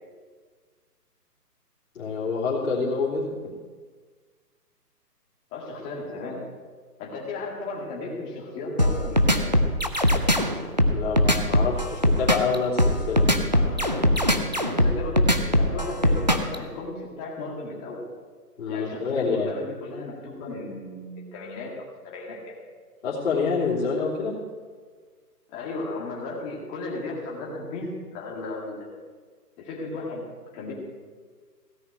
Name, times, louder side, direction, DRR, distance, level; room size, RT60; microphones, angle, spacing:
voice 1, 1.9-3.5 10.9-13.4 18.6-19.5 23.0-24.4, left 4 dB, 45° left, -9 dB, 3.5 m, -27 dB
voice 2, 5.5-6.4 7.0-9.6 13.5-14.1 14.5-18.0 18.7-22.6 25.5-28.9 29.6-30.3 30.5-30.7, left 2 dB, 15° left, -3 dB, 2.0 m, -35 dB
sound 1, 8.8-16.6, equal, 30° right, 0.5 m, -20 dB
16.5 x 5.8 x 8.5 m, 1.5 s
hypercardioid pair, 165°, 49 cm